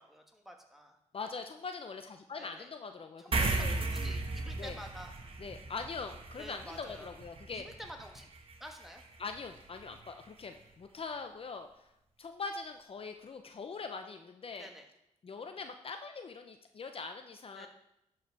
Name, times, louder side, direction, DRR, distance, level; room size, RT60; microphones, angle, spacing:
voice 1, 0.0-1.0 2.4-2.7 3.2-5.1 6.4-7.1 7.5-8.3 8.6-9.0 13.7-13.8 14.6-14.9 17.5-17.7, equal, ahead, 3 dB, 1.5 m, -49 dB
voice 2, 1.1-3.8 4.5-4.8 5.4-7.6 9.2-11.9 12.2-14.7 15.2-17.7, left 4 dB, 45° left, 6 dB, 0.6 m, -42 dB
sound 1, 3.3-10.1, right 3 dB, 45° right, 1.2 m, -37 dB
11.5 x 4.7 x 4.7 m, 0.82 s
cardioid pair, 80°, 13 cm